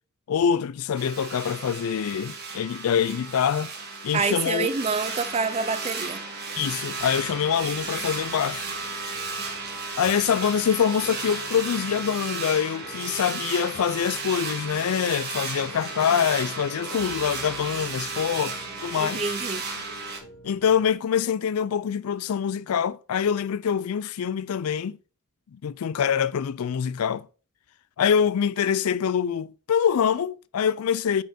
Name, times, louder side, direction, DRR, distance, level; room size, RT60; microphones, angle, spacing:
voice 1, 0.3-3.7 4.0-4.7 6.6-8.7 10.0-19.2 20.4-25.0 25.5-27.3 28.0-31.2, left 8 dB, 85° left, 0.4 m, -25 dB
sound 1, 1.0-20.2, right 4 dB, 50° right, 1.5 m, -34 dB
voice 2, 4.1-6.2 19.0-19.7, right 5 dB, 30° right, 0.4 m, -27 dB
sound 2, 7.0-20.9, equal, 65° left, 1.1 m, -48 dB
5.4 x 4.3 x 5.8 m
head